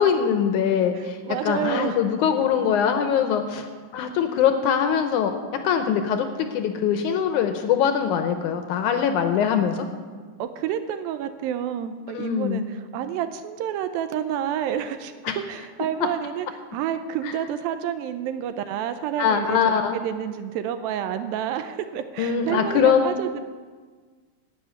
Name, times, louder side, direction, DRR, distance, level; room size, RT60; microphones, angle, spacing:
voice 1, 0.0-1.2 1.4-3.7 3.9-5.3 5.6-9.9 12.1-12.7 15.3-15.4 17.2-17.3 19.2-20.0 22.2-23.2, left 8 dB, 75° left, 7 dB, 1.9 m, -22 dB
voice 2, 0.9-2.0 10.4-23.4, right 9 dB, 85° right, 9 dB, 2.4 m, -29 dB
14.5 x 5.7 x 9.4 m, 1.5 s
omnidirectional pair, 4.1 m